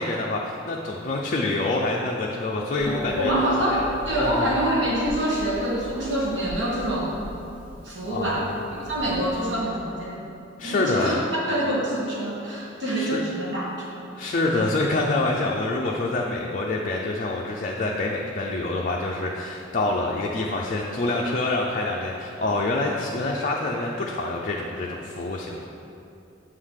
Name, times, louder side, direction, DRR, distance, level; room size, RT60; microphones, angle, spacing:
voice 1, 0.0-3.3 3.7-3.9 4.2-4.5 8.1-8.5 10.6-11.2 12.9-13.2 14.2-25.6, left 2 dB, 40° left, -2 dB, 0.5 m, -26 dB
Harp, 2.8-9.5, left 1 dB, 5° right, 1.0 m, -36 dB
voice 2, 3.2-7.2 7.8-10.2 10.6-11.2 11.5-14.7, right 1 dB, 65° right, -5 dB, 1.5 m, -26 dB
7.8 x 3.8 x 6.4 m, 2.7 s
head